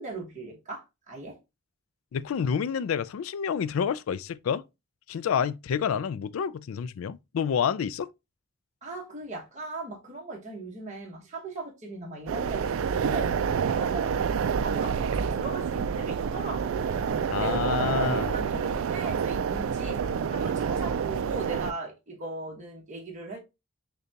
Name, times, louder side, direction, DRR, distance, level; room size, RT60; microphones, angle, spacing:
voice 1, 0.0-1.4 8.8-13.4 13.7-23.4, right 2 dB, 35° right, 1.2 m, -39 dB
voice 2, 2.1-4.6 5.1-8.1 17.3-18.3, left 7 dB, 90° left, 0.3 m, -28 dB
sound 1, 12.3-21.7, right 6 dB, 80° right, 0.4 m, -28 dB
6.6 x 2.3 x 2.7 m
head